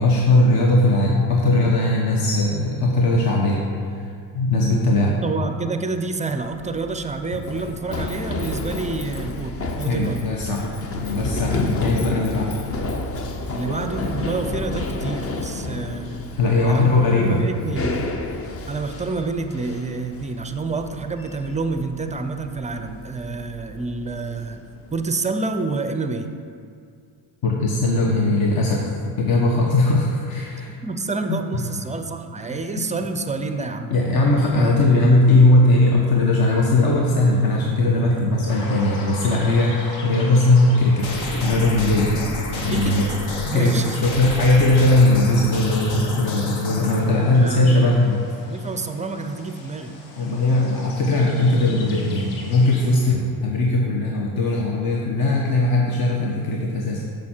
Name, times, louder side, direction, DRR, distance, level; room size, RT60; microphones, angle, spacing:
voice 1, 0.0-3.6 3.9-5.2 9.8-12.5 16.4-17.5 27.4-28.8 29.2-30.7 31.3-31.4 32.5-32.6 33.9-41.1 41.4-42.2 42.6-43.1 43.5-48.2 50.2-57.0, left 2 dB, 45° left, -2 dB, 1.1 m, -19 dB
voice 2, 5.2-10.2 13.5-16.3 16.7-18.0 18.7-24.6 24.9-26.3 30.8-33.9 42.6-43.0 43.5-44.0 47.1-47.8 48.5-49.9, right 3 dB, 15° right, 7 dB, 0.5 m, -28 dB
Run, 6.4-25.0, left 2 dB, 30° left, 0.7 m, -30 dB
sound 1, 38.5-53.1, left 2 dB, 85° left, 1.3 m, -42 dB
sound 2, 41.0-47.0, left 2 dB, 65° left, 1.5 m, -30 dB
8.4 x 6.6 x 4.4 m, 2.3 s
supercardioid pair, 85°, 50 cm